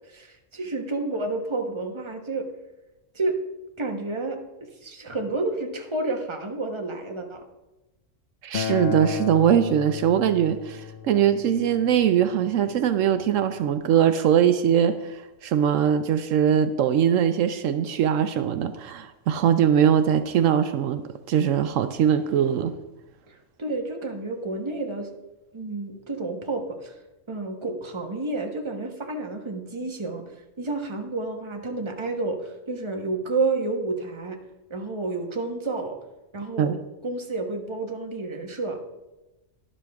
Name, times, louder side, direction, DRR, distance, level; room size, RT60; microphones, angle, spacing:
voice 1, 0.1-2.5 3.1-3.4 3.8-4.4 4.8-7.4 23.3-25.1 25.5-26.9 27.3-30.2 30.6-34.4 34.7-36.0 36.3-36.8 37.0-38.8, right 3 dB, 25° right, 3 dB, 1.1 m, -30 dB
voice 2, 8.4-22.7 36.6-36.8, right 9 dB, 75° right, 10 dB, 0.9 m, -21 dB
Acoustic guitar, 8.5-13.7, left 8 dB, 65° left, 0.5 m, -35 dB
12.0 x 11.0 x 3.5 m, 1.0 s
omnidirectional pair, 1.4 m